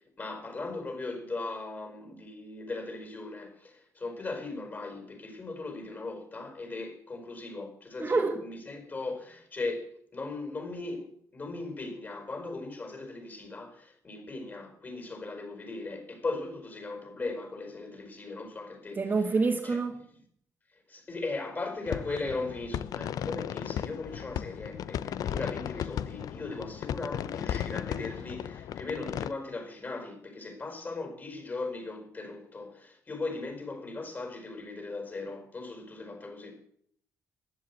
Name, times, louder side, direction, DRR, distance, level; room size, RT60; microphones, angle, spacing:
voice 1, 0.0-19.0 19.3-19.8 20.9-36.6, left 3 dB, 30° left, 4.9 m, -38 dB
voice 2, 8.0-8.4 19.0-20.0, right 4 dB, 30° right, 1.9 m, -27 dB
sound 1, 21.9-29.3, left 10 dB, 70° left, 0.6 m, -35 dB
14.5 x 11.5 x 8.4 m
cardioid pair, 130°, 6 cm